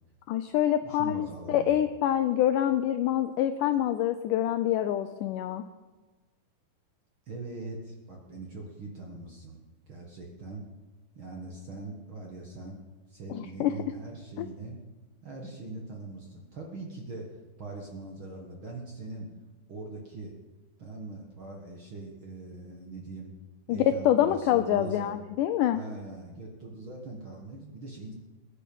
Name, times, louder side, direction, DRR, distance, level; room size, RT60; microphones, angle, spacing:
voice 1, 0.3-5.7 13.3-13.7 14.4-14.5 23.7-25.8, left 11 dB, 80° left, 9 dB, 1.8 m, -26 dB
voice 2, 0.8-1.9 7.3-10.6 11.1-12.8 13.1-14.8 15.2-17.3 17.6-19.3 19.7-20.3 20.8-23.3 23.7-25.1 25.7-28.1, right 2 dB, 50° right, 0 dB, 1.7 m, -41 dB
21.0 x 9.5 x 5.5 m, 1.3 s
omnidirectional pair, 4.2 m